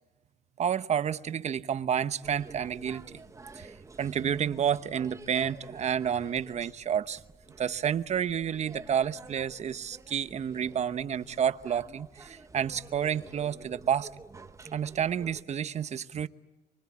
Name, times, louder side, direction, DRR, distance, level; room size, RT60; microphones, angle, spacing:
voice 1, 0.6-3.1 3.6-3.7 4.0-7.2 7.6-14.1 14.7-16.3, right 8 dB, 40° right, 1.0 m, -30 dB
sound 1, 2.2-15.4, right 3 dB, 20° right, 1.2 m, -49 dB
25.0 x 24.0 x 8.5 m
cardioid pair, 110°, 17 cm